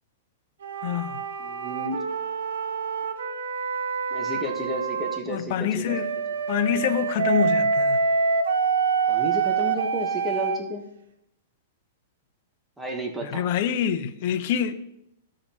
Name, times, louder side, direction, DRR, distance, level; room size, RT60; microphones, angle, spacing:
sound 1, 0.6-5.2 5.9-10.6, right 5 dB, 85° right, 0.9 m, -26 dB
voice 1, 0.8-1.2 5.3-6.1 6.5-8.0 13.2-14.7, left 9 dB, 50° left, 0.8 m, -26 dB
voice 2, 1.4-2.0 4.1-6.0 9.1-10.8 12.8-13.4, equal, 5° right, 1.2 m, -32 dB
15.0 x 5.1 x 2.9 m
hypercardioid pair, 150°, 0 cm